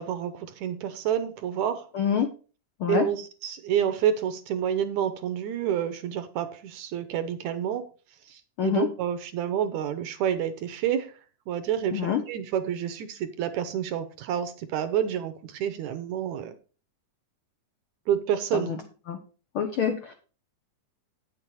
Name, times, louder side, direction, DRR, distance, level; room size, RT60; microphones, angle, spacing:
voice 1, 0.0-1.9 2.9-7.9 8.3-11.1 11.5-16.5 18.1-18.8, right 9 dB, 75° right, 1.9 m, -29 dB
voice 2, 1.9-2.3 2.8-3.0 8.6-8.9 11.9-12.2 18.5-18.8 19.1-19.2 19.5-20.1, left 8 dB, 90° left, 1.1 m, -26 dB
9.0 x 7.5 x 4.6 m
omnidirectional pair, 3.8 m